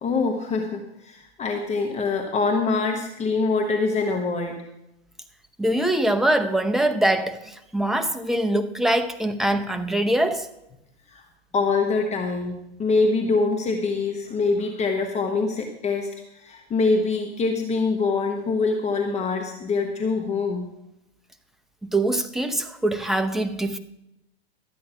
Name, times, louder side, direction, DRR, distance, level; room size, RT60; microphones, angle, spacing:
voice 1, 0.0-4.6 11.1-11.2 11.5-20.7, left 4 dB, 20° left, 1.2 m, -24 dB
voice 2, 5.6-10.5 21.8-23.8, right 1 dB, ahead, 0.8 m, -23 dB
12.5 x 8.5 x 5.8 m
hypercardioid pair, 115°, 32 cm